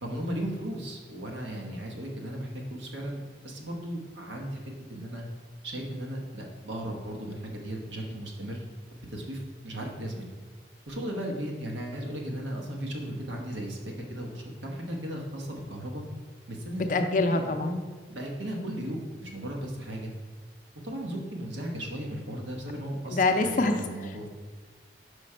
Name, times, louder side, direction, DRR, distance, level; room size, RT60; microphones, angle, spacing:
voice 1, 0.0-4.6 4.9-5.2 5.6-8.6 9.1-10.2 10.9-13.8 14.1-16.0 16.5-17.8 18.1-20.1 20.8-24.3, right 1 dB, 85° right, 1 dB, 1.1 m, -36 dB
voice 2, 16.8-17.7 23.1-23.7, left 3 dB, 45° left, 7 dB, 0.4 m, -25 dB
5.1 x 4.9 x 4.3 m, 1.4 s
head